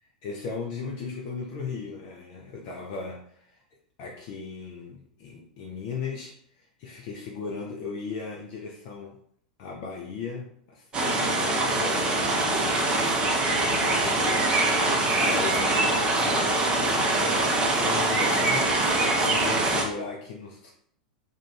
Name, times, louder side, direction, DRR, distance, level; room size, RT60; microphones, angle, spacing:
voice 1, 0.2-3.5 4.0-9.2 9.6-13.2 13.5-14.5 15.2-16.7 17.2-20.7, left 4 dB, 40° left, -2 dB, 0.5 m, -37 dB
sound 1, 10.9-19.9, right 2 dB, 20° right, 0.5 m, -23 dB
2.4 x 2.3 x 3.1 m, 0.64 s
figure-of-eight pair, 90°, 4 cm